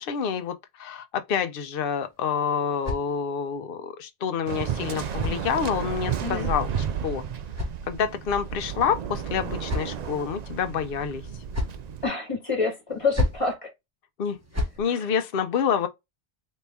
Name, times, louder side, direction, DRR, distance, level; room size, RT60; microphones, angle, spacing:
voice 1, 0.0-6.7 7.0-7.2 7.9-11.2 14.2-14.4 14.8-15.9, left 7 dB, 60° left, 0.8 m, -27 dB
sound 1, 1.9-3.6 4.6-6.0 7.0-8.4 9.2-10.2 11.2-11.9 12.9-13.5 14.3-14.8, left 2 dB, 15° right, 0.9 m, -33 dB
Waves surf, 4.5-12.1, right 7 dB, 55° right, 0.5 m, -32 dB
voice 2, 12.0-13.7 14.9-15.1, left 4 dB, 30° left, 1.4 m, -28 dB
4.3 x 2.6 x 3.4 m
omnidirectional pair, 1.1 m